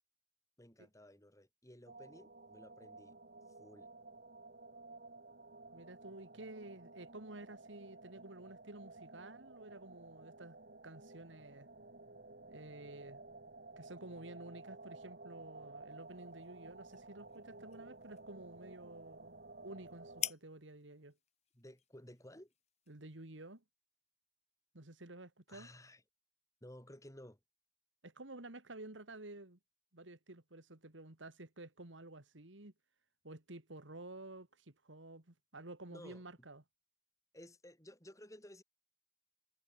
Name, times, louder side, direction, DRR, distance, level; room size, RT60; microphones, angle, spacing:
voice 1, 0.6-3.2 3.6-3.9 21.5-22.5 25.5-26.0 26.6-27.4 35.9-36.2 37.3-38.6, left 1 dB, 15° left, 7.3 m, -55 dB
sound 1, 1.9-20.3, right 2 dB, 55° right, 2.8 m, -54 dB
voice 2, 5.7-10.6 10.8-11.7 12.5-13.2 13.8-19.4 19.6-21.2 22.9-23.6 24.7-25.7 28.0-29.6 29.9-32.7 33.2-36.6, right 2 dB, 80° right, 2.6 m, -52 dB
sound 2, 15.9-23.6, left 11 dB, 35° left, 1.0 m, -50 dB
head